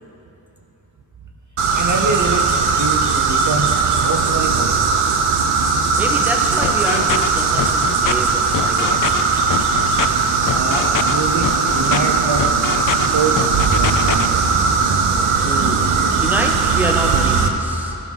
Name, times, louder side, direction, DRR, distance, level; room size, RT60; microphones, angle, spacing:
sound 1, 1.6-17.5, right 4 dB, 80° right, 0.7 m, -18 dB
voice 1, 1.7-3.7 4.0-4.9 10.5-12.6 13.1-14.6, right 4 dB, 35° right, 1 dB, 0.7 m, -25 dB
voice 2, 6.0-9.3 9.7-9.9 15.3-15.8 16.2-18.0, right 1 dB, 5° right, 1 dB, 1.1 m, -27 dB
sound 2, 6.6-7.3 7.6-8.1 8.5-9.2 9.5-10.1 10.5-11.1 11.4-12.0 12.4-13.1 13.4-14.3, left 9 dB, 45° left, 0.4 m, -23 dB
14.0 x 4.6 x 5.4 m, 3.0 s
cardioid pair, 45°, 50 cm